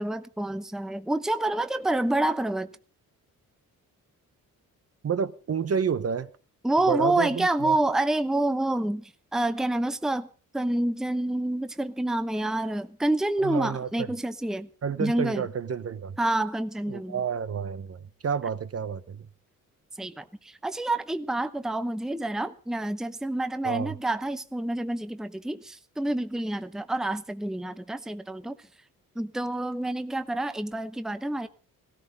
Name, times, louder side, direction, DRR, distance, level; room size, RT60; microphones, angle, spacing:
voice 1, 0.0-2.7 6.6-10.3 10.5-14.7 15.0-15.5 16.2-17.2 20.0-28.6 29.2-31.5, right 1 dB, ahead, 0.8 m, -28 dB
voice 2, 5.0-6.3 6.9-7.8 13.4-14.1 14.8-16.2 16.9-19.3 23.6-23.9, right 7 dB, 45° right, 0.9 m, -30 dB
17.0 x 13.5 x 5.3 m
cardioid pair, 85°, 34 cm